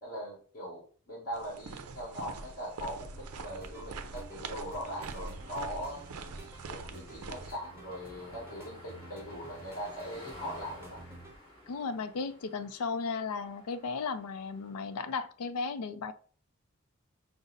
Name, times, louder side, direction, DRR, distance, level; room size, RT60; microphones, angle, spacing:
voice 1, 0.0-6.2 6.7-11.0, equal, 40° left, 1.4 m, -40 dB
sound 1, 1.3-7.5, right 4 dB, 80° right, 0.5 m, -44 dB
sound 2, 2.3-15.2, left 1 dB, 20° left, 1.8 m, -55 dB
sound 3, 3.2-11.4, right 2 dB, 10° right, 0.7 m, -51 dB
voice 2, 11.7-16.1, left 4 dB, 75° left, 0.4 m, -35 dB
5.2 x 2.0 x 3.9 m
head